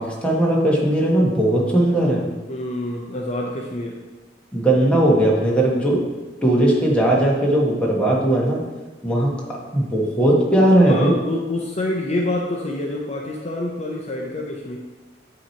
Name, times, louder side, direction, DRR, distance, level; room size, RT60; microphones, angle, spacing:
voice 1, 0.0-2.2 4.5-6.0 6.4-8.6 9.0-9.3 9.7-11.1, right 1 dB, 5° left, -4 dB, 1.2 m, -18 dB
voice 2, 2.5-4.0 10.8-14.8, left 1 dB, 40° left, -1 dB, 0.6 m, -27 dB
8.5 x 2.9 x 4.4 m, 1.2 s
head